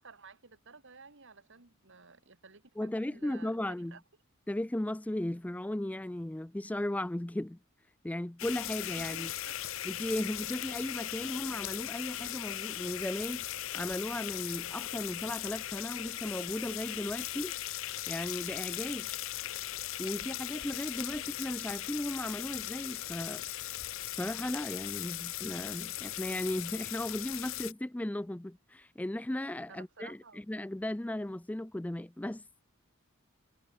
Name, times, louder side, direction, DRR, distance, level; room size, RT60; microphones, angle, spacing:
voice 1, 0.0-4.0 9.0-9.6 29.7-30.4, right 4 dB, 60° right, 2.5 m, -54 dB
voice 2, 2.8-4.0 4.5-7.6 8.0-9.3 9.8-13.4 13.7-17.5 18.1-19.1 20.0-23.4 24.2-32.4, left 1 dB, 5° left, 0.4 m, -36 dB
sound 1, 8.4-27.7, left 14 dB, 65° left, 0.7 m, -38 dB
head